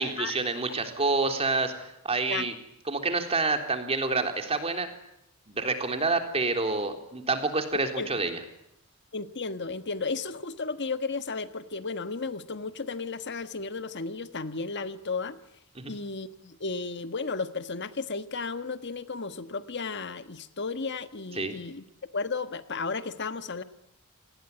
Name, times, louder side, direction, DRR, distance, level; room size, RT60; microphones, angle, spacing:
voice 1, 0.0-2.5 2.9-4.9 5.5-8.4 15.8-15.9 21.3-21.6, right 3 dB, 30° right, 5 dB, 3.7 m, -28 dB
voice 2, 9.1-15.4 15.9-21.8 22.1-23.6, left 4 dB, 55° left, 11 dB, 1.5 m, -34 dB
28.5 x 20.0 x 9.6 m, 0.80 s
head